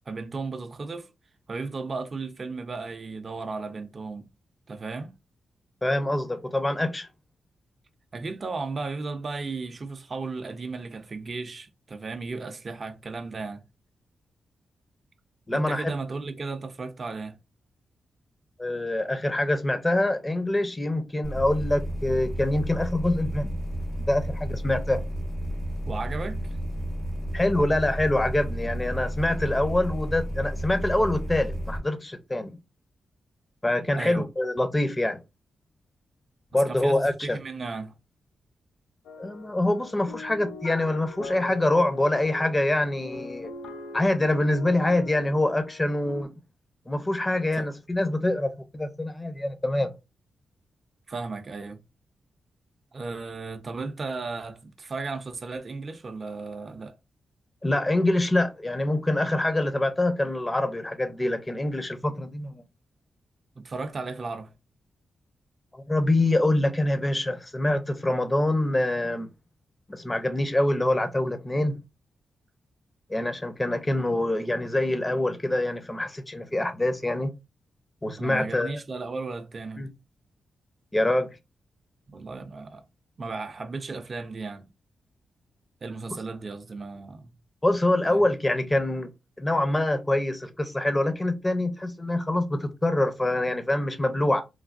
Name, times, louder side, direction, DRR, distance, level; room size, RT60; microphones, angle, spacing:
voice 1, 0.1-1.1 1.5-4.3 4.7-5.1 8.1-13.6 15.5-17.4 25.9-26.6 33.9-34.3 36.7-37.9 47.6-47.7 51.1-51.8 52.9-56.9 63.6-64.5 78.2-79.8 82.1-82.8 83.2-84.7 85.8-87.3 88.0-88.2, right 3 dB, 50° right, 0.4 m, -35 dB
voice 2, 5.8-7.1 15.5-15.9 18.6-23.6 24.1-25.0 27.3-32.6 33.6-35.2 36.5-37.4 39.2-43.5 43.9-46.3 46.9-49.9 57.6-62.6 65.7-69.3 69.9-71.8 73.1-77.3 78.0-78.8 79.8-79.9 80.9-81.3 87.6-89.1 89.4-94.4, left 1 dB, 20° left, 0.6 m, -25 dB
sound 1, 21.2-31.8, right 1 dB, 65° left, 1.3 m, -32 dB
sound 2, 39.0-46.2, left 4 dB, 90° left, 0.4 m, -41 dB
3.2 x 2.2 x 2.5 m
cardioid pair, 55°, 0 cm